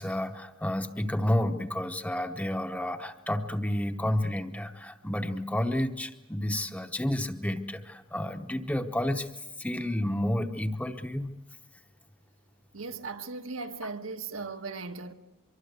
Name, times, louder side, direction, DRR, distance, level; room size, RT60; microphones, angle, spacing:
voice 1, 0.0-11.3, left 1 dB, 5° left, 0.9 m, -30 dB
voice 2, 12.7-15.1, right 4 dB, 75° right, 1.4 m, -37 dB
25.0 x 23.0 x 8.2 m
head